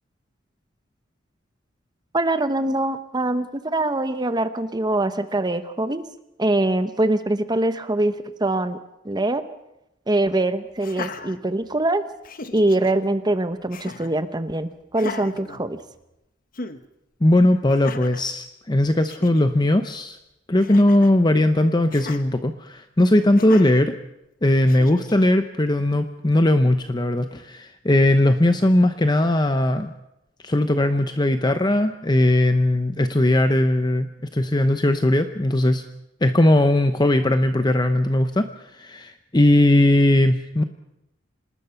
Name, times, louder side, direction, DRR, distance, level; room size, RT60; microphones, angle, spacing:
voice 1, 2.1-6.0 6.4-8.1 8.4-8.8 9.0-9.4 10.1-12.0 12.5-15.8, right 2 dB, 20° right, 10 dB, 1.0 m, -23 dB
Laughter, 10.8-11.9 12.2-12.9 13.7-14.2 14.9-16.2 16.5-16.8 17.7-18.3 18.8-18.9 19.1-19.5 20.6-21.2 21.9-22.2 23.4-23.8 24.7-25.3, left 4 dB, 45° left, 1.1 m, -37 dB
voice 2, 17.2-20.2 20.5-23.9 24.4-29.9 30.4-35.8 36.2-40.6, left 1 dB, 20° left, 8 dB, 0.8 m, -19 dB
26.5 x 19.5 x 5.8 m, 0.88 s
head